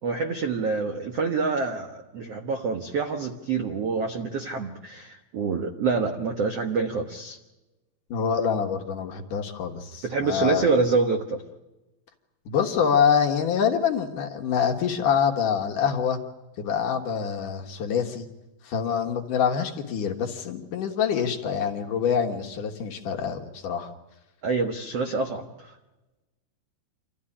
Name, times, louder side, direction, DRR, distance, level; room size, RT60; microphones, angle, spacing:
voice 1, 0.0-7.4 10.0-11.4 24.4-25.7, right 4 dB, 80° right, 5 dB, 1.3 m, -26 dB
voice 2, 8.1-10.7 12.5-16.2 16.6-18.3 18.6-23.9, left 7 dB, 60° left, 3 dB, 2.6 m, -25 dB
27.5 x 14.5 x 9.9 m, 1.1 s
omnidirectional pair, 5.0 m